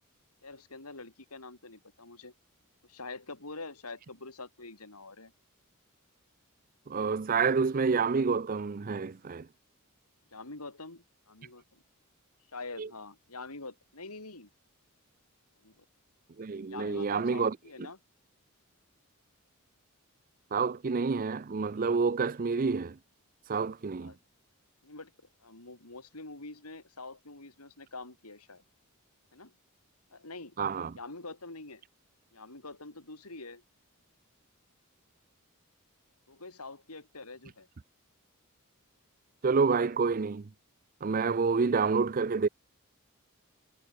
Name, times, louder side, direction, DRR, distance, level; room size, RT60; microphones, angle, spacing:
voice 1, 0.4-2.3 2.8-5.3 10.3-11.8 12.5-14.5 15.6-15.8 16.7-18.0 24.0-24.2 24.8-25.1 25.4-28.6 29.3-29.5 30.1-30.6 30.9-31.8 32.3-33.6 36.3-37.7 41.8-42.0, left 3 dB, 85° left, 4.5 m, -45 dB
voice 2, 6.9-9.5 12.8-12.9 16.4-17.6 20.5-23.0 23.5-24.1 30.6-30.9 39.4-40.5 41.0-42.5, right 5 dB, 40° right, 0.5 m, -28 dB
head